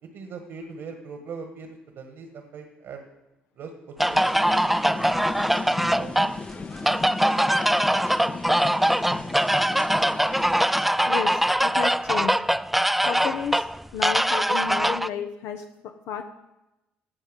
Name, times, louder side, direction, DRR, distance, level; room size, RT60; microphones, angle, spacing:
voice 1, 0.1-1.7 1.9-3.0 3.6-5.2 5.9-6.2 6.8-7.0, right 5 dB, 65° right, 5 dB, 1.5 m, -40 dB
sound 1, 4.0-10.9, left 3 dB, 35° left, 0.7 m, -35 dB
sound 2, 4.0-15.1, equal, 5° right, 0.3 m, -22 dB
voice 2, 11.1-12.4 13.0-13.7 13.9-16.2, left 7 dB, 75° left, 6 dB, 0.8 m, -32 dB
16.5 x 5.6 x 5.2 m, 0.97 s
supercardioid pair, 65°, 4 cm